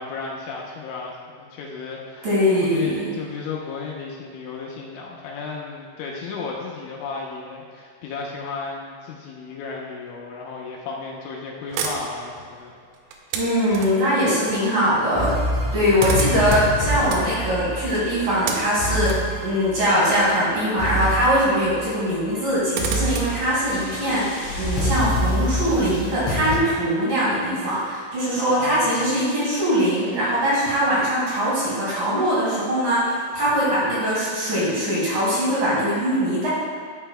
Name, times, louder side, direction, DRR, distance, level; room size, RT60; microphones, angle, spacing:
voice 1, 0.0-2.3 2.6-12.7 28.3-29.1, left 4 dB, 80° left, -2 dB, 3.0 m, -34 dB
voice 2, 2.2-3.1 13.3-36.5, equal, 55° right, -9 dB, 3.2 m, -22 dB
sound 1, 11.7-14.2 15.3-15.4 15.6-21.1 21.4-21.5 22.3-24.8, right 5 dB, 90° right, 3.2 m, -34 dB
sound 2, 15.1-20.4 20.8-21.9 22.3-22.5 22.8-26.6, equal, 45° left, 2.3 m, -27 dB
13.0 x 5.7 x 2.2 m, 2.2 s
omnidirectional pair, 5.6 m